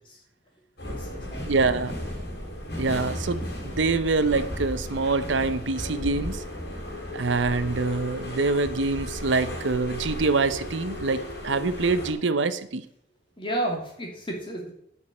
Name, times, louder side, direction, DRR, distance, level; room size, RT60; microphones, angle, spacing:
sound 1, 0.8-12.1, left 1 dB, 60° left, 3.9 m, -35 dB
voice 1, 0.8-1.7 2.0-2.1 13.4-14.7, right 1 dB, 30° left, 0 dB, 3.1 m, -33 dB
voice 2, 1.4-2.0 2.8-6.4 7.1-12.9, right 3 dB, 85° right, 13 dB, 0.8 m, -25 dB
10.5 x 6.4 x 7.2 m, 0.73 s
head